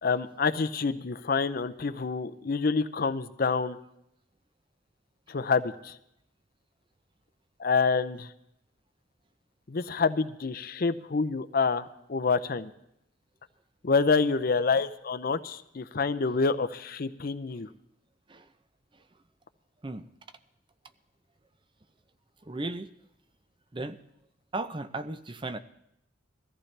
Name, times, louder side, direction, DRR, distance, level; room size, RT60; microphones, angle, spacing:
voice 1, 0.0-3.8 5.3-6.0 7.6-8.3 9.7-12.7 13.8-17.7, left 4 dB, 50° left, 12 dB, 0.6 m, -27 dB
voice 2, 22.4-22.9 23.7-24.0 24.5-25.6, right 2 dB, 25° right, 11 dB, 0.6 m, -35 dB
21.5 x 14.5 x 3.3 m, 0.80 s
head